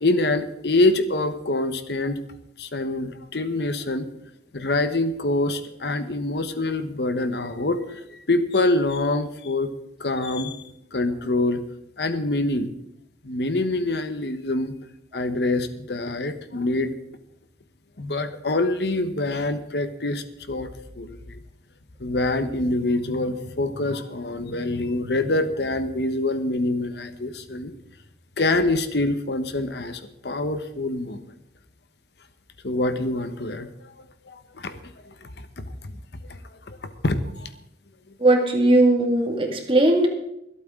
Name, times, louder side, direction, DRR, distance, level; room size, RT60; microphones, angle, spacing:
voice 1, 0.0-2.2 2.6-4.1 4.5-9.7 10.0-10.6 10.9-11.6 12.0-12.7 13.2-14.7 15.1-16.9 18.0-20.7 20.9-21.4 22.0-27.7 28.4-31.3 32.6-33.9 34.3-35.9 36.3-36.4 36.7-37.5, left 2 dB, 75° left, 10 dB, 1.1 m, -25 dB
voice 2, 38.2-40.1, right 2 dB, 30° right, 3 dB, 2.1 m, -18 dB
24.5 x 8.5 x 3.7 m, 0.81 s
head